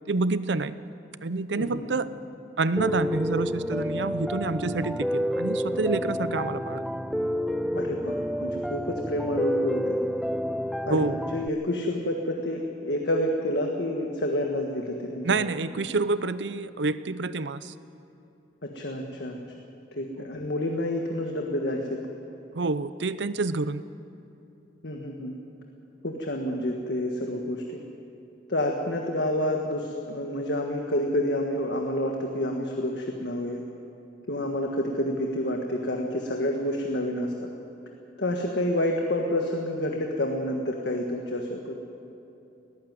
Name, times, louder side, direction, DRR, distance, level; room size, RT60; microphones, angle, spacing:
voice 1, 0.1-0.7 1.2-2.1 2.6-6.9 10.9-11.2 15.2-17.7 20.2-20.3 22.5-23.8, right 3 dB, 75° right, 14 dB, 0.7 m, -28 dB
voice 2, 1.6-1.9 7.7-10.0 10.8-15.4 18.6-19.4 19.9-22.0 24.8-25.3 26.0-27.8 28.5-33.6 34.3-37.5 38.2-41.7, left 1 dB, 70° left, 2 dB, 1.6 m, -29 dB
Piano, 2.8-11.5, equal, ahead, 0.4 m, -29 dB
19.0 x 14.5 x 9.6 m, 2.9 s
head